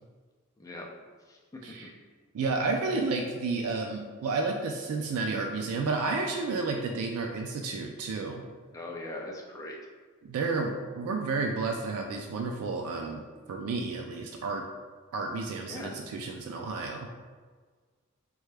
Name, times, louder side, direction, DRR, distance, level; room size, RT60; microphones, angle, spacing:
voice 1, 0.6-0.9 1.3-1.6 8.7-9.8 15.7-15.9, left 2 dB, 15° left, -1 dB, 0.4 m, -40 dB
voice 2, 2.3-8.4 10.2-14.6 15.1-17.1, right 3 dB, 70° right, 3 dB, 0.3 m, -31 dB
3.6 x 2.2 x 3.2 m, 1.5 s
head